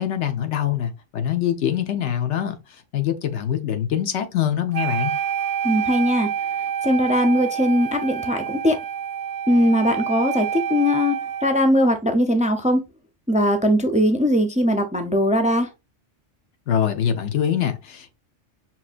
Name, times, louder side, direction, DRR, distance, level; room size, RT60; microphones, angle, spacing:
voice 1, 0.0-2.6 2.9-5.1 16.7-18.2, left 10 dB, 75° left, 1.2 m, -24 dB
Wind instrument woodwind instrument, 4.7-11.7, right 9 dB, 85° right, 0.9 m, -28 dB
voice 2, 5.6-6.3 6.8-8.8 9.5-12.8 13.3-15.7, equal, 10° right, 0.4 m, -20 dB
5.8 x 2.9 x 2.5 m
omnidirectional pair, 1.2 m